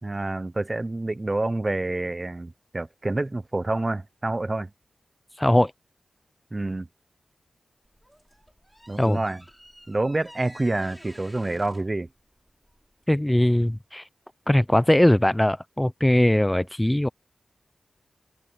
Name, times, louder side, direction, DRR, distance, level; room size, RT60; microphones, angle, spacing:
voice 1, 0.0-4.7 6.5-6.9 8.9-9.4 9.9-12.1, right 2 dB, 35° right, 0.8 m, -28 dB
voice 2, 5.4-5.7 9.0-9.2 13.1-14.0 14.5-17.1, left 1 dB, 15° left, 0.7 m, -20 dB
sound 1, 7.8-13.0, equal, 5° right, 4.6 m, -51 dB
cardioid pair, 50°, 0 cm